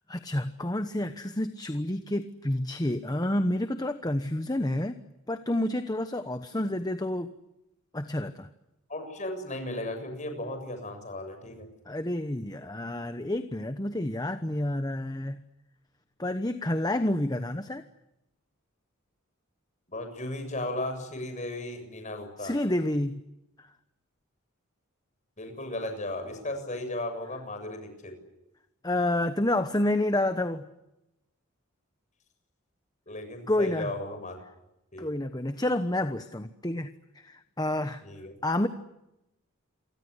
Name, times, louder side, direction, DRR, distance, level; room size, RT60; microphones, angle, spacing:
voice 1, 0.1-5.0 5.3-7.3 7.9-8.5 11.9-15.4 16.2-17.8 22.4-23.2 23.6-23.7 28.8-30.7 33.5-33.9 35.0-38.0 38.4-38.7, left 1 dB, 20° left, 9 dB, 1.0 m, -29 dB
voice 2, 8.9-11.7 19.9-22.5 25.4-28.2 33.1-34.4 34.9-35.1 38.0-38.3, left 1 dB, 35° left, 6 dB, 7.3 m, -35 dB
29.0 x 24.0 x 8.2 m, 0.92 s
head